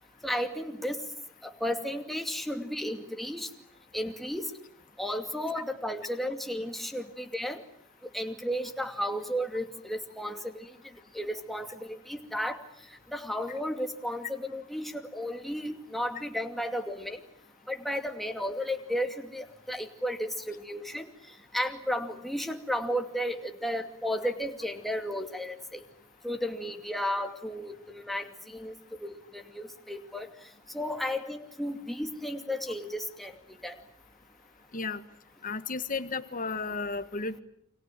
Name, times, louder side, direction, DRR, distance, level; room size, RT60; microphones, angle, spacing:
voice 1, 0.2-1.1 1.4-3.5 3.9-4.5 5.0-7.6 8.1-10.7 11.1-12.6 13.1-17.2 17.7-21.1 21.5-25.8 26.2-28.7 29.0-30.3 30.7-33.4 33.6-33.7, equal, ahead, 4 dB, 2.5 m, -33 dB
voice 2, 35.4-37.4, left 4 dB, 40° left, 11 dB, 1.7 m, -33 dB
29.0 x 26.5 x 7.6 m, 0.69 s
head